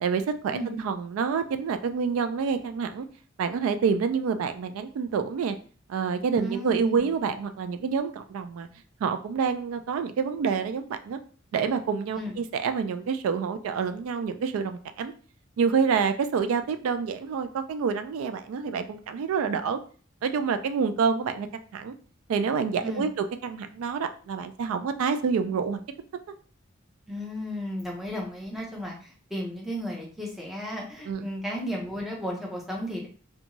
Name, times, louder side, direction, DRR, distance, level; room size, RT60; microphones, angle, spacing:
voice 1, 0.0-3.1 3.4-5.6 5.9-8.7 9.0-11.2 11.5-15.1 15.6-19.8 20.2-21.5 21.7-21.9 22.3-23.1 23.4-25.8 31.1-31.3, right 6 dB, 90° right, 10 dB, 0.3 m, -27 dB
voice 2, 6.3-7.0 12.1-12.4 22.8-23.1 27.1-33.1, equal, ahead, -2 dB, 0.6 m, -34 dB
2.6 x 2.3 x 2.9 m, 0.41 s
head